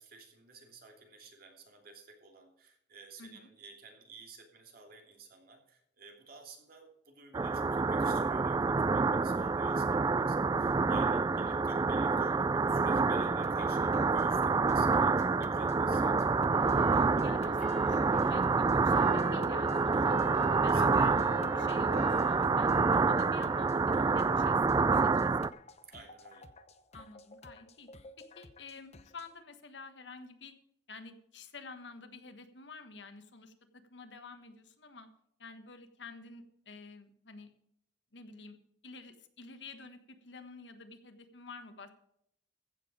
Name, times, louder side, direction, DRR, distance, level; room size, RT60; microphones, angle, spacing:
voice 1, 0.0-16.3 20.7-21.2 25.9-26.5, right 4 dB, 55° right, 2 dB, 3.0 m, -53 dB
sound 1, 7.3-25.5, right 4 dB, 20° right, 0.3 m, -27 dB
sound 2, 13.4-29.3, left 2 dB, 35° left, 0.8 m, -54 dB
sound 3, 16.5-23.8, left 3 dB, 55° left, 3.3 m, -46 dB
voice 2, 16.9-21.1 21.5-22.7 23.1-25.3 26.9-27.9 28.3-30.5 30.9-35.1 35.4-37.5 38.1-38.6 38.8-41.9, left 4 dB, 85° left, 8 dB, 1.5 m, -50 dB
15.0 x 7.3 x 5.0 m, 0.75 s
head